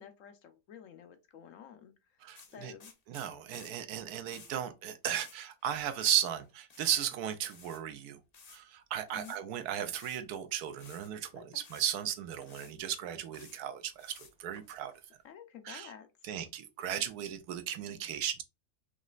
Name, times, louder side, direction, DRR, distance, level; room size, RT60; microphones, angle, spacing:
voice 1, 0.0-1.9 2.5-2.9 9.1-9.4 11.3-11.6 15.2-16.1, left 8 dB, 65° left, 1.0 m, -51 dB
voice 2, 2.2-2.7 3.1-8.2 8.5-14.9 15.7-15.9 16.2-18.4, right 10 dB, 85° right, 1.2 m, -35 dB
sound 1, 2.3-3.7 4.2-4.5 5.1-5.4 5.6-6.2 6.5-7.0 7.5-7.8 8.3-8.6 9.1-9.4 9.9-10.4 10.7-11.1 11.6-11.9 12.4-12.8 13.1-13.6 14.0-15.0, left 5 dB, 50° left, 0.5 m, -55 dB
5.0 x 3.1 x 2.4 m
omnidirectional pair, 1.6 m